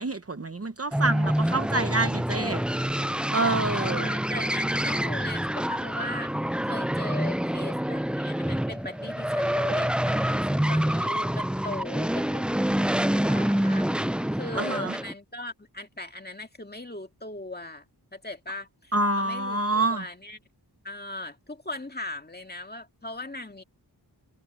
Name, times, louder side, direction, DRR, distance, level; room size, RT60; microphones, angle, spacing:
voice 1, 0.0-2.9 3.3-4.1 14.6-14.9 18.9-20.0, right 2 dB, 35° right, 0.9 m, -27 dB
sound 1, 0.9-15.1, equal, 5° right, 0.4 m, -27 dB
voice 2, 3.7-6.3 6.6-17.8 18.1-20.4 20.8-23.6, left 2 dB, 25° left, 2.1 m, -39 dB
wide cardioid pair, 65°, 41 cm